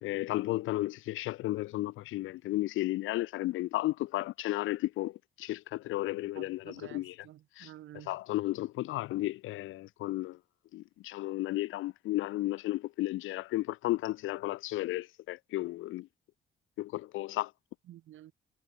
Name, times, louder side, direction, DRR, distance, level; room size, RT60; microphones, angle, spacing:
voice 1, 0.0-7.1 7.6-7.7 8.1-10.4 10.7-16.1 16.8-17.5, left 17 dB, 90° left, 1.1 m, -33 dB
voice 2, 6.3-8.2 17.9-18.3, right 13 dB, 80° right, 5.8 m, -50 dB
cardioid pair, 90°, 20 cm